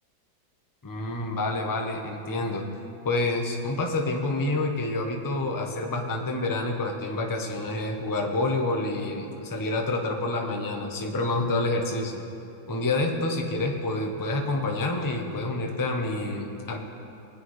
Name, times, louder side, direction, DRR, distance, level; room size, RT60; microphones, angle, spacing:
voice 1, 0.8-2.6 3.0-12.2 12.7-16.8, left 2 dB, 25° left, 2 dB, 0.4 m, -28 dB
22.0 x 8.9 x 3.2 m, 2.7 s
omnidirectional pair, 2.1 m